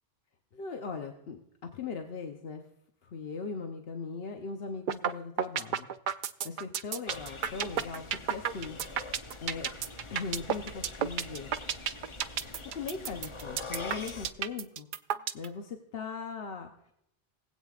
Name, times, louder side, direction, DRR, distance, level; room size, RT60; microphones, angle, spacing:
voice 1, 0.5-2.6 3.0-5.9 6.4-8.8 9.4-9.7 10.1-11.5 12.7-14.9 15.3-16.9, left 5 dB, 70° left, 4 dB, 1.0 m, -39 dB
sound 1, 4.9-5.1 5.4-15.5, right 9 dB, 60° right, 0.6 m, -31 dB
sound 2, 7.1-14.3, left 3 dB, 35° left, 0.7 m, -44 dB
19.0 x 8.4 x 2.4 m, 0.78 s
omnidirectional pair, 1.1 m